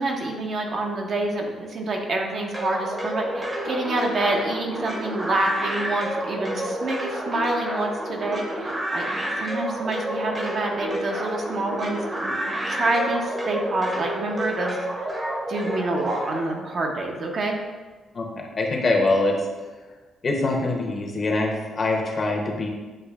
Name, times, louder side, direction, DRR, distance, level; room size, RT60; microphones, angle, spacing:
voice 1, 0.0-9.0 9.4-15.2 15.5-17.6, right 2 dB, 55° right, 1 dB, 0.7 m, -27 dB
sound 1, 2.5-16.4, right 1 dB, 20° right, 0.8 m, -29 dB
voice 2, 18.1-19.5 20.2-22.7, left 2 dB, 40° left, 1 dB, 0.8 m, -24 dB
7.6 x 2.6 x 2.4 m, 1.3 s
cardioid pair, 90°, 0 cm